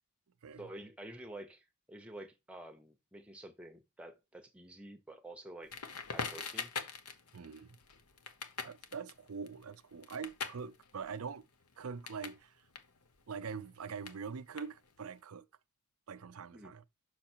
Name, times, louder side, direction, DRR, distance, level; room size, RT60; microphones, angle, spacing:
voice 1, 0.6-5.7 6.1-6.7 16.5-16.7, right 1 dB, 5° right, 0.9 m, -49 dB
Crackle, 5.7-12.4 12.7-15.1, left 5 dB, 80° left, 0.9 m, -44 dB
voice 2, 7.3-7.8 8.6-11.4 11.8-12.6 13.3-15.5 16.1-16.8, right 5 dB, 70° right, 0.5 m, -44 dB
5.9 x 5.8 x 4.4 m
head